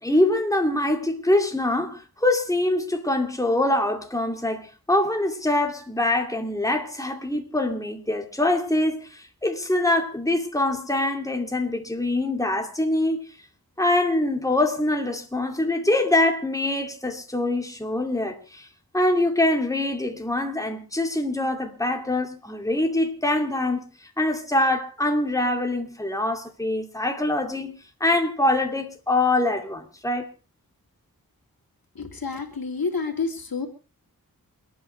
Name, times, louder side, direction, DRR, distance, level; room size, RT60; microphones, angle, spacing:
voice 1, 0.0-13.2 13.8-18.7 18.9-23.9 24.2-30.3, left 1 dB, 10° left, 2.5 m, -24 dB
voice 2, 31.9-33.7, left 4 dB, 75° left, 2.9 m, -29 dB
28.5 x 9.7 x 3.3 m
wide cardioid pair, 60°, 36 cm